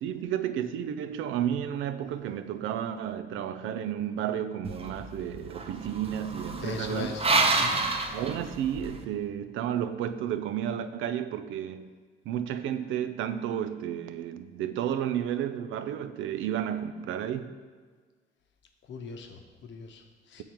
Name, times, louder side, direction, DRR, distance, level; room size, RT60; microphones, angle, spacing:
voice 1, 0.0-7.1 8.1-11.9 12.3-17.6, right 10 dB, 85° right, 10 dB, 0.4 m, -32 dB
sound 1, 4.6-9.0, right 3 dB, 30° right, 0.6 m, -29 dB
voice 2, 6.6-7.3 7.5-7.8 18.9-20.4, left 4 dB, 70° left, 4 dB, 0.8 m, -39 dB
7.1 x 3.6 x 4.4 m, 1.5 s
cardioid pair, 90°, 20 cm